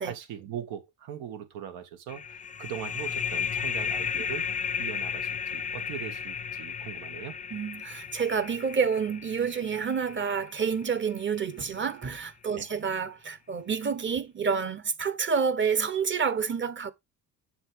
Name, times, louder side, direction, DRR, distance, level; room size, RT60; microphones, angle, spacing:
voice 1, 0.0-7.4 12.5-12.7, right 9 dB, 85° right, 2.1 m, -40 dB
sound 1, 2.1-11.4, left 7 dB, 20° left, 0.5 m, -34 dB
voice 2, 7.5-16.9, right 6 dB, 30° right, 1.1 m, -29 dB
7.3 x 6.8 x 3.6 m
cardioid pair, 110°, 36 cm